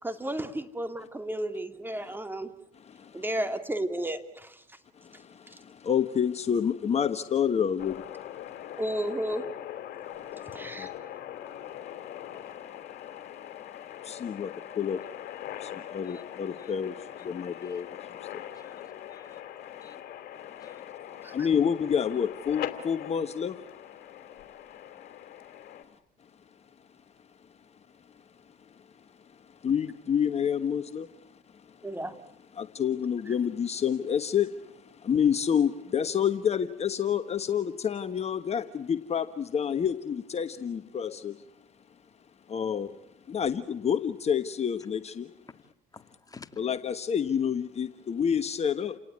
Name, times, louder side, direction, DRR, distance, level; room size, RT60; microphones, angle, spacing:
voice 1, 0.0-2.5 3.1-4.8 5.5-5.6 8.8-9.4 10.5-10.9 21.2-21.5 31.8-32.1, right 1 dB, 10° right, 2.5 m, -33 dB
voice 2, 2.9-3.2 5.0-8.8 10.2-10.9 11.7-18.9 19.8-20.0 20.5-23.6 29.6-31.1 32.6-41.4 42.5-42.9 43.3-45.3 46.6-49.0, left 8 dB, 35° left, 1.3 m, -29 dB
sound 1, 7.8-25.8, left 11 dB, 60° left, 3.1 m, -42 dB
voice 3, 19.1-20.0 20.6-20.9 45.9-46.6, left 4 dB, 20° left, 2.1 m, -52 dB
30.0 x 18.5 x 9.7 m
supercardioid pair, 80°, 18 cm